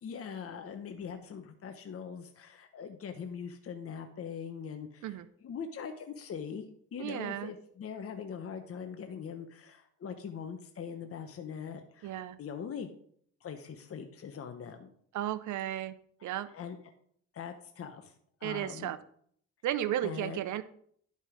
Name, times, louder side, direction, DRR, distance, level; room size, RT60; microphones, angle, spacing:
voice 1, 0.0-5.2 5.4-12.1 12.4-12.9 13.4-14.9 16.5-16.8 17.3-18.1 18.4-18.9 20.0-20.4, left 7 dB, 50° left, 6 dB, 1.0 m, -42 dB
voice 2, 7.0-7.5 12.0-12.4 15.1-15.9 16.2-16.5 18.4-19.0 19.6-20.6, right 12 dB, 75° right, 14 dB, 0.7 m, -34 dB
11.0 x 5.4 x 5.0 m, 0.62 s
cardioid pair, 90°, 30 cm